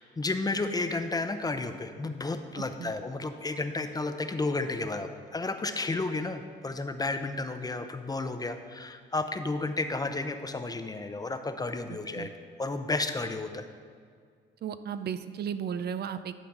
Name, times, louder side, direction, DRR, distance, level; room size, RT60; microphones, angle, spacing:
voice 1, 0.0-12.3 12.6-13.7, left 3 dB, 20° left, 8 dB, 0.6 m, -32 dB
voice 2, 2.6-2.9 12.2-12.3 14.6-16.3, right 8 dB, 55° right, 11 dB, 0.5 m, -35 dB
12.0 x 4.0 x 5.9 m, 2.1 s
cardioid pair, 90°, 20 cm